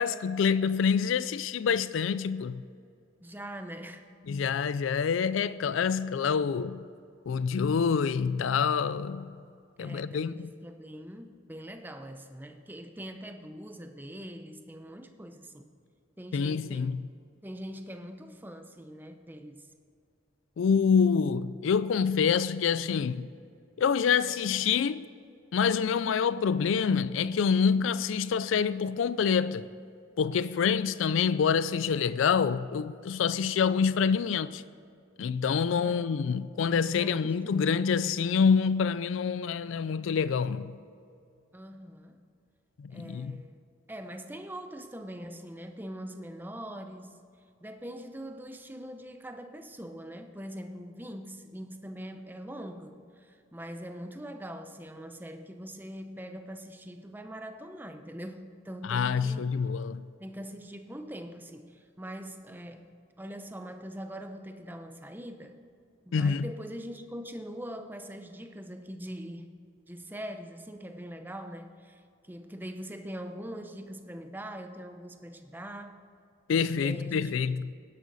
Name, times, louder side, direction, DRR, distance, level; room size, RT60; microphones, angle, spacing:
voice 1, 0.0-2.6 4.3-6.8 7.3-9.3 9.8-10.5 16.3-17.0 20.6-23.3 23.8-25.1 25.5-29.7 30.2-34.6 35.2-40.8 42.8-43.4 58.8-60.0 66.1-66.5 76.5-77.7, left 6 dB, 80° left, 0.4 m, -26 dB
voice 2, 3.2-4.1 9.8-15.7 16.2-17.0 17.4-19.7 35.7-36.5 36.9-37.6 41.5-42.2 42.9-47.2 47.6-59.5 60.2-62.9 63.2-65.6 66.0-69.5 69.9-76.0 76.7-77.4, equal, 10° right, 0.7 m, -42 dB
18.0 x 11.0 x 4.1 m
head